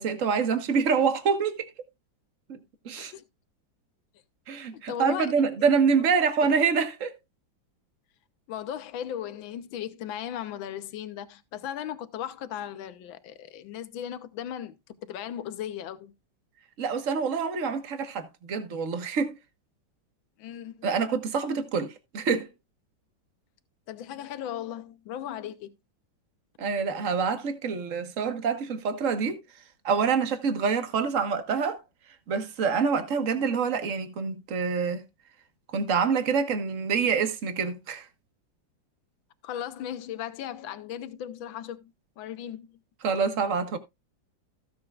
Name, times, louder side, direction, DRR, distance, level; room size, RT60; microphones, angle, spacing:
voice 1, 0.0-1.7 2.5-2.6 2.8-3.1 4.5-7.1 16.8-19.4 20.8-22.5 26.6-29.4 29.8-31.8 32.3-35.0 35.7-38.1 43.0-43.8, right 5 dB, 45° right, 1.6 m, -26 dB
voice 2, 4.7-5.5 8.5-16.1 20.4-20.9 23.9-25.7 39.4-42.8, left 10 dB, 85° left, 1.6 m, -37 dB
16.0 x 7.4 x 2.4 m
omnidirectional pair, 2.1 m